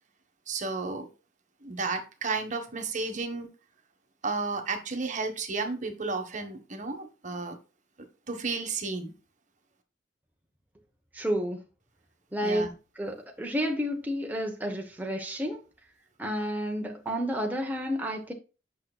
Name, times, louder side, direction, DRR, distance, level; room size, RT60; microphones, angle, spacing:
voice 1, 0.5-1.1 1.6-3.5 4.2-7.6 8.3-9.1 12.4-12.7, right 4 dB, 45° right, 6 dB, 1.3 m, -32 dB
voice 2, 11.1-11.6 12.3-12.7 13.0-15.6 16.2-18.3, equal, 10° right, 1 dB, 0.9 m, -30 dB
8.6 x 6.1 x 2.3 m, 0.31 s
head